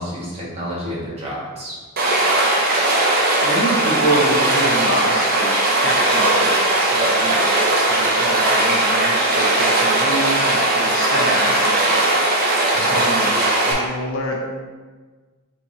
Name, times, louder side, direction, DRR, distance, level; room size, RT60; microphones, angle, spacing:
voice 1, 0.0-1.8 12.7-13.0, equal, 30° right, -7 dB, 1.3 m, -30 dB
Stream, 2.0-13.7, right 2 dB, 45° right, 0.8 m, -18 dB
voice 2, 3.4-12.4 12.7-14.4, right 1 dB, 60° left, 0 dB, 0.8 m, -27 dB
5.5 x 3.2 x 2.8 m, 1.4 s
head